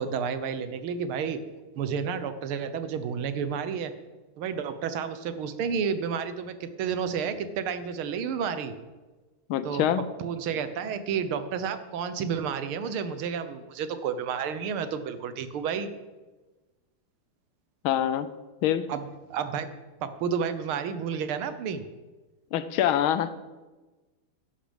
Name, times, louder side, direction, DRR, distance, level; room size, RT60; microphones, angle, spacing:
voice 1, 0.0-1.4 1.8-3.9 4.4-8.7 9.6-9.8 10.2-15.9 18.9-19.0 19.3-19.7 20.0-21.8, right 7 dB, 90° right, 11 dB, 1.9 m, -31 dB
voice 2, 9.5-10.1 17.8-18.3 18.6-18.9 22.5-23.4, left 10 dB, 80° left, 14 dB, 1.6 m, -25 dB
12.5 x 11.0 x 5.2 m, 1.2 s
omnidirectional pair, 2.3 m